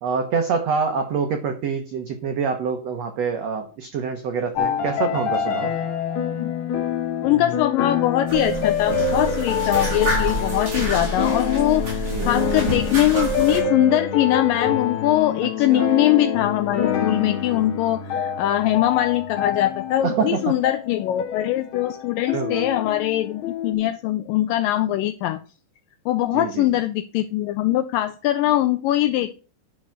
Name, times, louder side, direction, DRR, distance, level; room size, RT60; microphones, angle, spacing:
voice 1, 0.0-5.7 12.1-12.3 15.6-15.9 20.0-20.5 22.3-22.7 26.3-26.7, right 5 dB, 85° right, 6 dB, 1.4 m, -26 dB
sound 1, 4.6-23.7, left 6 dB, 65° left, 1.9 m, -26 dB
voice 2, 7.2-25.4 26.1-29.4, left 14 dB, 85° left, 9 dB, 1.9 m, -22 dB
sound 2, 8.3-13.6, right 2 dB, 35° right, 5.5 m, -28 dB
10.5 x 4.6 x 6.4 m, 0.37 s
omnidirectional pair, 4.4 m